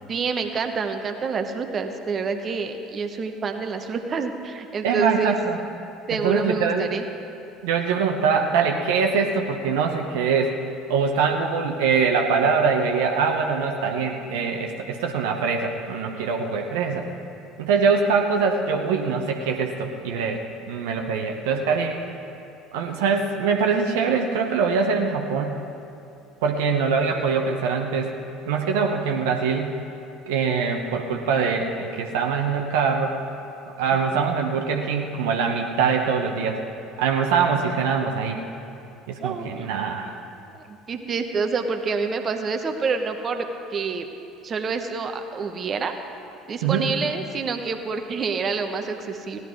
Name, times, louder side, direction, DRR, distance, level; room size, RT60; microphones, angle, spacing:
voice 1, 0.1-5.4 6.1-7.1 39.2-39.7 40.5-43.4 43.7-44.1 44.4-45.9 46.5-49.4, right 5 dB, 40° right, 6 dB, 1.0 m, -27 dB
voice 2, 4.8-5.6 6.1-7.0 7.6-10.6 10.9-17.0 17.6-20.4 20.7-22.1 22.7-25.6 26.4-28.1 28.5-29.8 30.3-33.2 33.8-36.6 37.0-38.4 39.1-40.2 46.6-46.9, right 5 dB, 70° right, 3 dB, 0.9 m, -23 dB
16.5 x 11.0 x 4.7 m, 2.7 s
hypercardioid pair, 65°, 0 cm